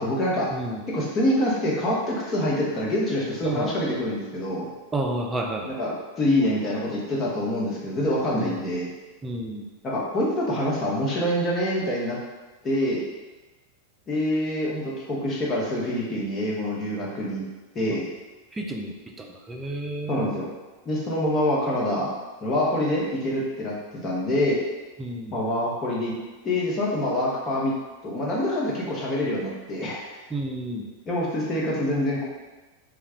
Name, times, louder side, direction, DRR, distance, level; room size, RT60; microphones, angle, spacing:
voice 1, 0.0-0.5 0.9-4.7 5.7-8.9 9.8-12.2 12.6-13.0 14.1-17.4 17.7-18.0 20.1-20.5 20.8-22.1 22.4-23.7 24.0-24.6 25.3-26.1 26.4-27.7 28.0-30.0 31.1-32.3, left 1 dB, 30° left, -5 dB, 0.9 m, -25 dB
voice 2, 0.5-0.8 3.4-3.7 4.9-5.7 8.3-8.7 9.2-9.7 18.5-20.4 25.0-25.3 30.3-30.9, right 1 dB, 15° right, 1 dB, 0.4 m, -31 dB
2.4 x 2.2 x 3.5 m, 1.2 s
hypercardioid pair, 100°, 0 cm